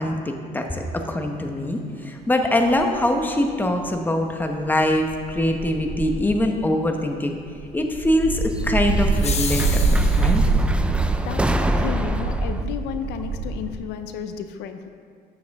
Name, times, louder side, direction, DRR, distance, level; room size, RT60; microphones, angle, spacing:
voice 1, 0.0-7.4 7.7-9.6 9.9-10.4, left 1 dB, 10° left, 4 dB, 0.9 m, -23 dB
sound 1, 1.2-1.3 2.7-2.9 4.9-6.7 7.3-13.8, right 3 dB, 65° right, 1.6 m, -24 dB
sound 2, 2.7-4.7 5.0-5.7 6.8-6.9 8.5-12.6, right 1 dB, 5° right, 0.4 m, -28 dB
sound 3, 9.1-10.4, left 5 dB, 40° left, 1.0 m, -30 dB
voice 2, 11.2-14.9, left 8 dB, 85° left, 8 dB, 0.6 m, -32 dB
12.0 x 7.7 x 3.5 m, 2.1 s
cardioid pair, 110°, 17 cm